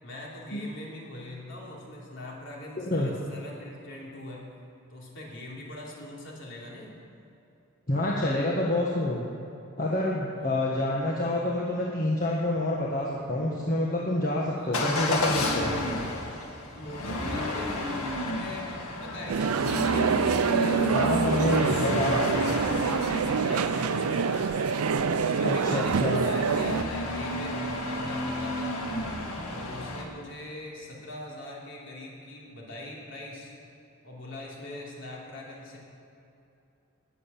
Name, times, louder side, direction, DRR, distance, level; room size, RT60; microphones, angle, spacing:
voice 1, 0.0-4.4 4.9-7.0 10.3-10.6 14.5-14.8 16.6-20.9 21.2-24.4 25.2-28.8 29.5-33.5 34.0-35.8, left 1 dB, 55° left, -4 dB, 3.7 m, -42 dB
voice 2, 2.8-3.1 7.9-9.2 9.8-15.7 20.9-22.2 25.4-26.3, left 1 dB, 40° left, -4 dB, 1.6 m, -27 dB
Motor vehicle (road) / Engine starting / Accelerating revving vroom, 14.7-30.0, left 1 dB, 80° left, 2.2 m, -31 dB
sound 1, 19.3-26.8, right 6 dB, 90° right, 0.5 m, -26 dB
19.5 x 7.9 x 7.4 m, 2.9 s
head